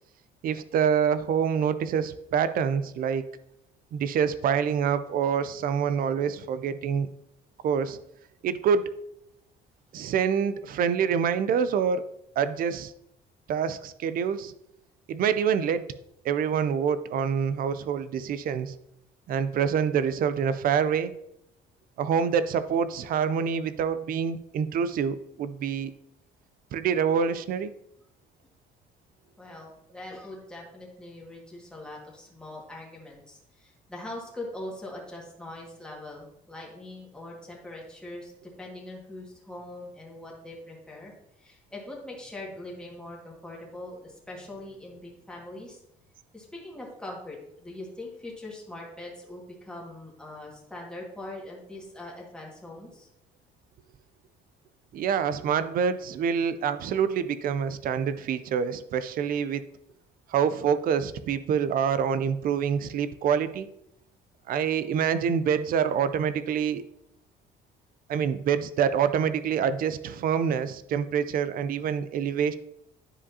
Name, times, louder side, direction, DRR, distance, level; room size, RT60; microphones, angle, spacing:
voice 1, 0.4-3.2 3.9-7.1 7.6-8.0 8.4-8.9 9.9-12.1 12.4-12.9 13.5-14.5 15.1-15.8 16.2-18.7 19.3-21.1 22.0-25.9 26.7-27.7 54.9-59.6 60.3-63.7 64.5-66.8 68.1-72.5, right 7 dB, 60° right, 13 dB, 0.5 m, -26 dB
voice 2, 29.4-38.3 38.6-45.8 46.3-53.1, left 1 dB, 5° left, -3 dB, 1.7 m, -42 dB
9.8 x 5.0 x 2.8 m, 0.78 s
cardioid pair, 110°, 17 cm